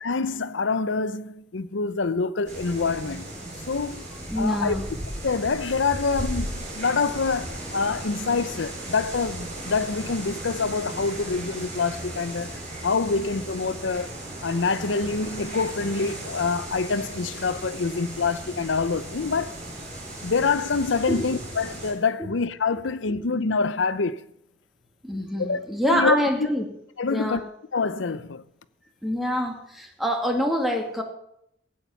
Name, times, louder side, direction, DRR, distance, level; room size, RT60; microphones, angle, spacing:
voice 1, 0.0-3.3 3.7-4.0 4.4-4.8 5.2-14.1 14.4-19.6 20.2-24.2 25.4-26.2 27.0-27.4 27.7-28.4, left 4 dB, 80° left, 0.7 m, -26 dB
sound 1, 2.5-21.9, right 1 dB, 40° right, 5.1 m, -36 dB
voice 2, 4.3-4.8 21.1-21.3 22.2-22.3 25.0-26.6 27.1-27.4 29.0-31.0, equal, ahead, 2.2 m, -25 dB
16.0 x 8.7 x 7.1 m
head